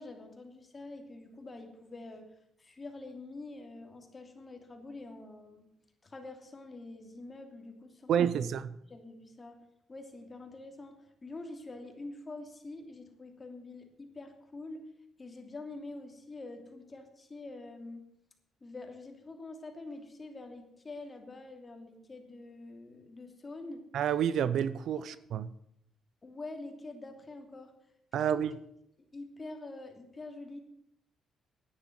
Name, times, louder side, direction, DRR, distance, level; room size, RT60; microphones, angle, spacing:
voice 1, 0.0-5.7 6.0-8.5 8.9-14.9 15.2-18.1 18.6-23.9 25.0-25.1 26.2-27.8 28.3-28.6 29.1-30.6, left 2 dB, 30° left, 3.0 m, -46 dB
voice 2, 8.1-8.7 23.9-25.5 28.1-28.5, right 9 dB, 70° right, 0.6 m, -29 dB
11.0 x 9.6 x 8.1 m
cardioid pair, 90°, 0 cm